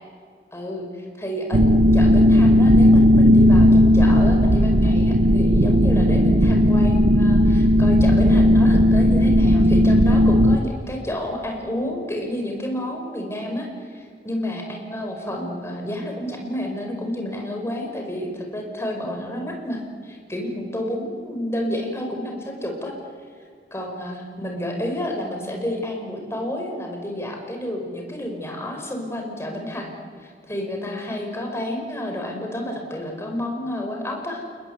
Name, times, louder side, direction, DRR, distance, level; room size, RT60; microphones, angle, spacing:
voice 1, 0.5-1.6 1.9-23.0 23.7-29.9 30.2-34.4, left 1 dB, 15° left, 2 dB, 5.4 m, -30 dB
sound 1, 1.5-10.6, equal, 90° right, 1.0 m, -15 dB
30.0 x 20.0 x 8.3 m, 2.1 s
head